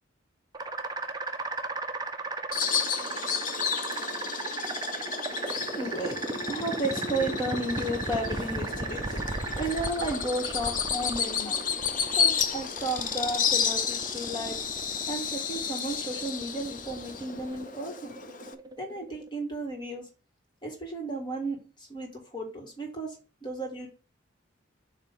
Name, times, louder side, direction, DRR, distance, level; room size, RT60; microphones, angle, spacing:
sound 1, 0.5-19.3, right 3 dB, 20° right, 0.5 m, -36 dB
Bird vocalization bird call bird song, 2.5-18.5, left 7 dB, 40° left, 0.6 m, -32 dB
voice 1, 5.8-9.3 9.6-11.6 12.2-14.6 15.1-18.2 18.8-20.0 20.6-21.6 21.9-23.1 23.4-23.9, right 2 dB, 25° left, 1 dB, 1.8 m, -33 dB
7.6 x 2.9 x 5.4 m, 0.33 s
head